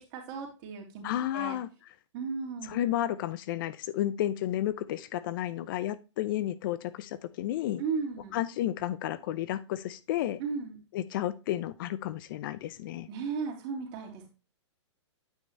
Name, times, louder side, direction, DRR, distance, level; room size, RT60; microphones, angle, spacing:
voice 1, 0.1-1.0 1.3-1.6 2.1-2.7 7.8-8.4 10.4-10.8 13.1-14.3, right 5 dB, 40° right, 0 dB, 3.3 m, -35 dB
voice 2, 1.0-1.7 2.6-7.8 8.3-10.4 10.9-13.1, left 13 dB, 45° left, 16 dB, 0.5 m, -32 dB
9.2 x 5.4 x 3.2 m, 0.30 s
hypercardioid pair, 130°, 16 cm